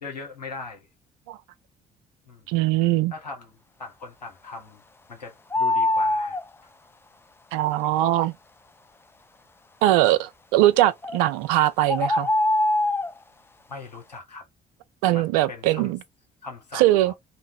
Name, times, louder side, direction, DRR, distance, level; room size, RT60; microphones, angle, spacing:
voice 1, 0.0-0.9 2.3-2.5 3.1-4.8 5.1-6.7 7.9-8.0 13.7-14.5 15.1-15.9 16.4-17.1, left 4 dB, 90° left, 0.7 m, -40 dB
voice 2, 2.5-3.1 7.5-8.3 9.8-12.3 15.0-16.0 16.7-17.1, right 15 dB, 65° right, 0.4 m, -21 dB
sound 1, 5.5-6.4 11.0-11.2 11.9-13.1, left 1 dB, 10° left, 0.4 m, -22 dB
2.6 x 2.1 x 3.4 m
figure-of-eight pair, 50°, 21 cm